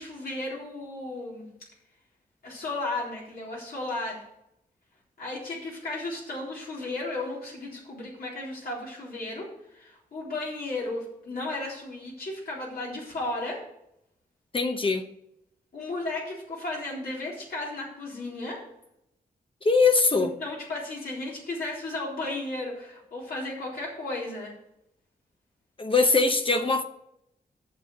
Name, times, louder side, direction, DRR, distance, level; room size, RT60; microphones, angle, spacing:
voice 1, 0.0-1.5 2.4-4.2 5.2-9.5 9.7-13.6 15.7-18.6 20.2-24.5, left 2 dB, 75° left, 3.8 m, -34 dB
voice 2, 14.5-15.0 19.6-20.3 25.8-26.8, left 3 dB, 35° left, 0.9 m, -22 dB
8.3 x 6.6 x 6.6 m
cardioid pair, 80°, 16 cm